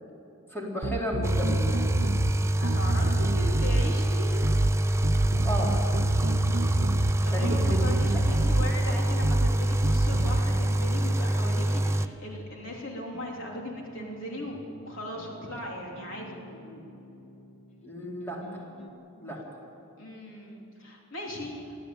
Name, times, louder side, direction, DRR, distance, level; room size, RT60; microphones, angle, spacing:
voice 1, 0.5-1.7 5.4-5.8 7.3-7.9 16.5-16.8 17.8-18.4 19.2-19.4, equal, 10° left, -3 dB, 4.1 m, -33 dB
sound 1, 0.8-2.4 2.6-3.9 4.4-4.7 5.0-7.2 7.4-8.7 9.2-9.5 9.8-10.4, right 2 dB, 55° right, 1.0 m, -28 dB
sound 2, 1.2-12.1, right 1 dB, 15° right, 0.6 m, -26 dB
voice 2, 2.5-4.4 7.2-14.6 14.8-16.4 20.0-21.8, left 1 dB, 65° left, -1 dB, 3.5 m, -38 dB
sound 3, 10.9-18.9, right 1 dB, 35° left, 1.7 m, -50 dB
22.5 x 15.0 x 9.0 m, 2.9 s
head